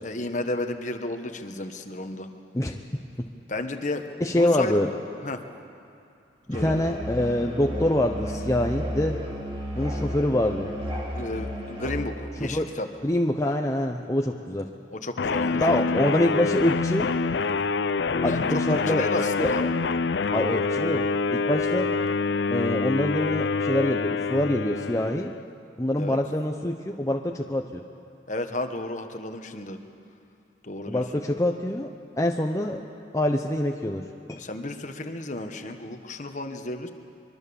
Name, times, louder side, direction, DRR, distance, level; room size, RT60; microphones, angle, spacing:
voice 1, 0.0-2.3 3.5-4.7 5.2-5.4 6.5-6.8 11.1-12.9 14.9-16.1 18.2-19.7 26.0-26.2 28.3-29.8 30.6-31.0 34.4-36.9, left 2 dB, 40° left, 6 dB, 1.3 m, -32 dB
voice 2, 4.2-4.9 6.5-9.2 9.8-10.7 12.5-12.7 13.0-14.7 15.5-17.1 18.2-19.1 19.4-19.5 20.3-21.9 22.5-25.3 25.8-27.8 30.9-31.9 32.2-32.8 33.1-34.4, left 1 dB, 15° left, 2 dB, 0.8 m, -25 dB
Musical instrument, 6.5-12.1, equal, 30° right, 4.0 m, -33 dB
sound 1, 15.2-25.4, left 4 dB, 70° left, 0.5 m, -26 dB
24.5 x 23.0 x 7.0 m, 2.5 s
head